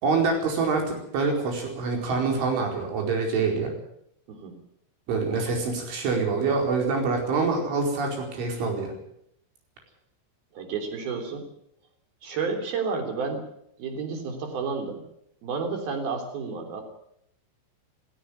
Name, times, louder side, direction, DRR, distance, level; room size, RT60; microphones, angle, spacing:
voice 1, 0.0-3.7 5.1-8.9, right 4 dB, 80° right, 2 dB, 7.1 m, -25 dB
voice 2, 10.5-11.5 12.2-13.5 13.8-15.0 15.4-16.8, right 5 dB, 55° right, 4 dB, 5.1 m, -31 dB
16.5 x 16.5 x 9.6 m, 0.75 s
omnidirectional pair, 5.4 m